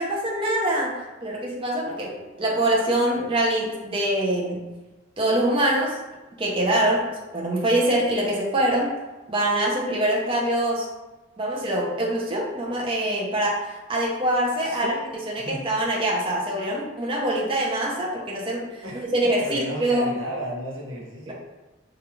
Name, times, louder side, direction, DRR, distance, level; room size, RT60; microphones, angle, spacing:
voice 1, 0.0-4.6 5.2-6.0 6.4-7.1 7.3-8.9 9.3-10.9 11.4-15.0 15.3-18.7 18.9-20.1 21.3-21.4, right 1 dB, 25° right, -3 dB, 0.5 m, -24 dB
voice 2, 14.6-15.1 15.4-15.6 18.8-21.3, equal, 85° right, -2 dB, 0.7 m, -34 dB
2.4 x 2.2 x 2.9 m, 1.1 s
head